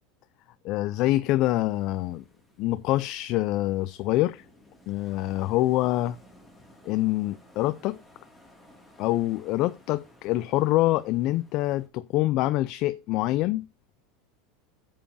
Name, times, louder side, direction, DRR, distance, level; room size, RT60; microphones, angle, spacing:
voice 1, 0.6-2.2 2.6-4.4 4.9-6.2 6.8-8.0 9.0-13.7, left 16 dB, 45° left, 0.4 m, -25 dB
sound 1, 1.4-11.9, left 1 dB, ahead, 2.1 m, -56 dB
13.0 x 7.4 x 2.6 m
supercardioid pair, 150°, 0 cm